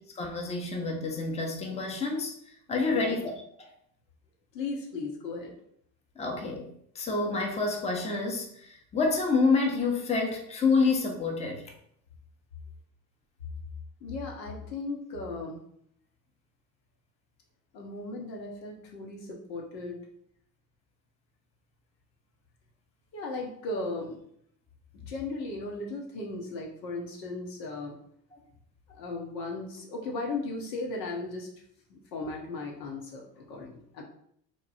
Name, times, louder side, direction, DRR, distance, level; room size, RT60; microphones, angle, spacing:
voice 1, 0.2-2.3 2.7-3.3 6.2-11.7 28.3-28.4, left 4 dB, 15° left, 1 dB, 0.7 m, -28 dB
voice 2, 2.9-3.2 4.5-5.5 14.0-15.6 17.7-20.0 23.1-24.2 25.1-28.0 28.9-31.5 31.9-34.0, left 3 dB, 80° left, 0 dB, 1.1 m, -36 dB
3.3 x 2.2 x 4.1 m, 0.69 s
hypercardioid pair, 75°, 49 cm